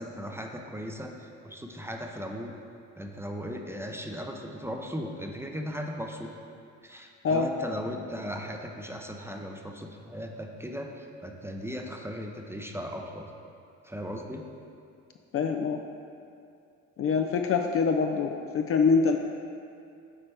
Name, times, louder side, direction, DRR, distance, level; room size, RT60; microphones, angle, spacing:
voice 1, 0.0-2.5 3.0-6.3 6.8-13.3 13.8-14.5, equal, 5° right, 2 dB, 0.6 m, -37 dB
voice 2, 15.3-15.8 17.0-19.2, left 5 dB, 40° left, 4 dB, 0.4 m, -25 dB
8.3 x 4.2 x 3.3 m, 2.5 s
hypercardioid pair, 60°, 37 cm